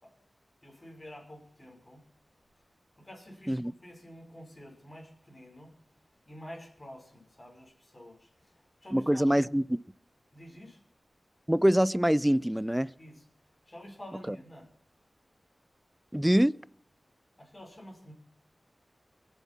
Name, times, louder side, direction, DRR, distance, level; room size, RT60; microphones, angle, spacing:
voice 1, 0.6-2.0 3.0-5.7 6.3-9.5 10.3-10.8 13.0-13.3 13.7-14.7 17.4-18.1, equal, 30° left, 5.8 m, -49 dB
voice 2, 8.9-9.8 11.5-12.9 16.1-16.6, equal, 5° right, 0.5 m, -24 dB
24.5 x 8.3 x 5.9 m
wide cardioid pair, 80°, 0 cm